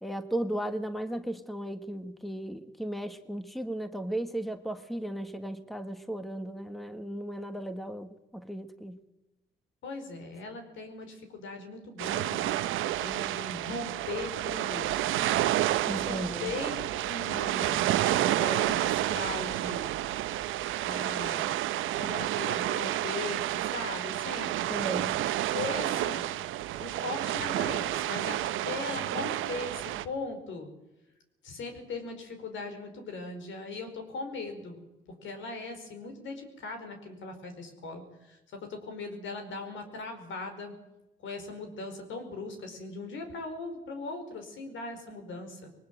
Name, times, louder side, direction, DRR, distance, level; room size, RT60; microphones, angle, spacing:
voice 1, 0.0-9.0 15.8-16.5 24.7-25.2, right 1 dB, ahead, 9 dB, 1.5 m, -35 dB
voice 2, 9.8-15.2 15.9-19.9 20.8-21.6 22.0-24.8 25.5-26.3 26.8-30.7 31.4-34.8 35.2-40.7 41.2-45.7, left 3 dB, 75° left, 6 dB, 5.0 m, -39 dB
sound 1, 12.0-30.0, right 14 dB, 85° right, 0.8 m, -30 dB
21.5 x 19.5 x 7.7 m, 0.98 s
cardioid pair, 90°, 20 cm